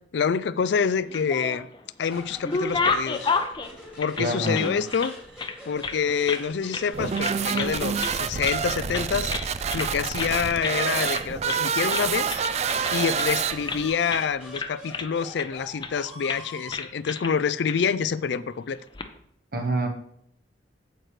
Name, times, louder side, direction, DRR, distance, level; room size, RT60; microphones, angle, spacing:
voice 1, 0.1-1.7 2.0-3.3 4.0-5.1 5.7-12.4 12.9-18.8, left 6 dB, 65° left, 0.4 m, -27 dB
sound 1, 1.0-1.8 2.2-5.1 5.4-6.4 6.7-6.9 7.1-7.7 8.0-8.6 8.9-9.9 10.2-10.4 10.6-10.8 11.0-11.6 11.9-13.8 14.1-14.3 14.5-15.5 15.8-16.0 16.3-16.4 16.7-17.3 17.7-17.8 18.7-19.1, left 4 dB, 25° left, 0.6 m, -30 dB
sound 2, 2.0-16.7, equal, 5° right, 2.3 m, -45 dB
voice 2, 4.2-4.8 19.5-19.9, right 1 dB, 50° right, 1.4 m, -26 dB
sound 3, 6.9-13.9, right 7 dB, 35° right, 0.3 m, -27 dB
8.8 x 8.0 x 3.2 m
head